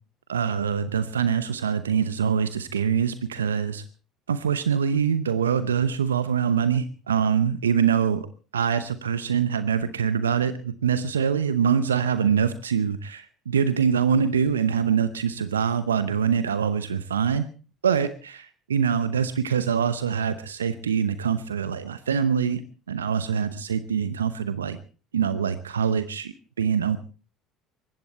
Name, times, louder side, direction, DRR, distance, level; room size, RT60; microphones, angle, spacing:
voice 1, 0.3-3.8 4.3-8.3 8.5-17.5 17.8-22.6 22.9-24.8 25.1-27.0, right 7 dB, 90° right, 13 dB, 0.8 m, -24 dB
20.0 x 15.5 x 4.4 m, 0.36 s
hypercardioid pair, 65°, 0 cm